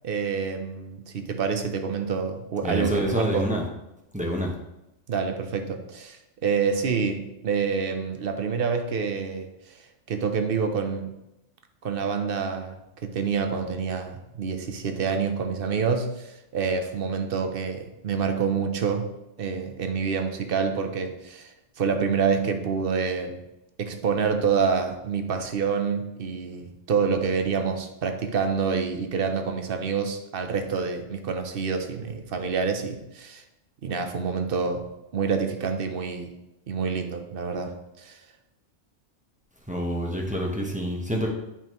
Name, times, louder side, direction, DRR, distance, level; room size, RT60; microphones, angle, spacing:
voice 1, 0.0-3.5 5.1-9.8 10.1-11.2 11.8-19.1 19.4-23.4 23.8-33.4 33.8-34.9 35.1-36.3 36.7-38.2, right 5 dB, 55° right, 6 dB, 0.9 m, -27 dB
voice 2, 2.6-3.7 4.1-4.5 39.7-41.3, equal, 5° right, -1 dB, 1.0 m, -27 dB
8.8 x 5.3 x 3.0 m, 0.91 s
omnidirectional pair, 1.3 m